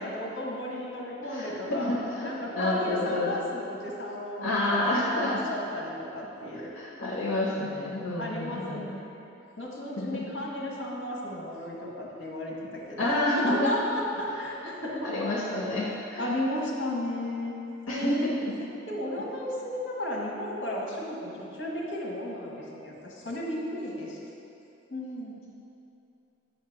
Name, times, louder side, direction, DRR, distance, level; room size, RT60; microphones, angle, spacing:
voice 1, 0.0-6.7 8.2-9.1 9.6-13.1 13.4-15.0 16.2-17.6 17.9-18.3 18.9-24.2 24.9-25.4, left 1 dB, 60° left, -3 dB, 1.3 m, -34 dB
voice 2, 1.8-3.3 4.4-5.4 6.8-8.9 10.0-10.3 13.0-13.7 15.0-16.2 17.9-18.6, left 1 dB, 75° left, -6 dB, 0.9 m, -29 dB
8.1 x 2.9 x 5.8 m, 2.8 s
head